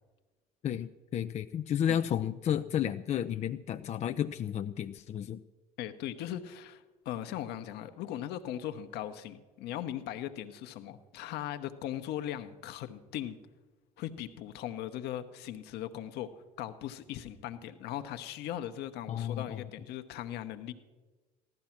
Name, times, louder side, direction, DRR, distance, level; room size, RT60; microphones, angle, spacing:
voice 1, 0.6-5.4 19.1-19.6, left 9 dB, 35° left, 9 dB, 0.5 m, -32 dB
voice 2, 5.8-13.4 14.0-16.3 16.6-20.7, left 11 dB, 60° left, 10 dB, 1.0 m, -39 dB
15.5 x 12.0 x 5.9 m, 1.3 s
hypercardioid pair, 65°, 20 cm